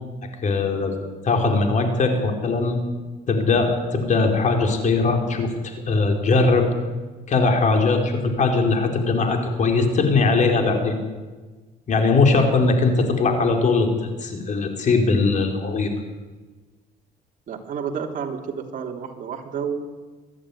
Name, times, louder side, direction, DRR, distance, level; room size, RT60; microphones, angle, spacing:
voice 1, 0.4-0.9 1.2-2.8 3.3-6.7 7.3-11.0 11.9-15.9, left 3 dB, 45° left, 3 dB, 4.3 m, -20 dB
voice 2, 17.5-19.9, right 6 dB, 50° right, 1 dB, 3.3 m, -30 dB
24.5 x 11.0 x 9.9 m, 1.3 s
cardioid pair, 110°, 17 cm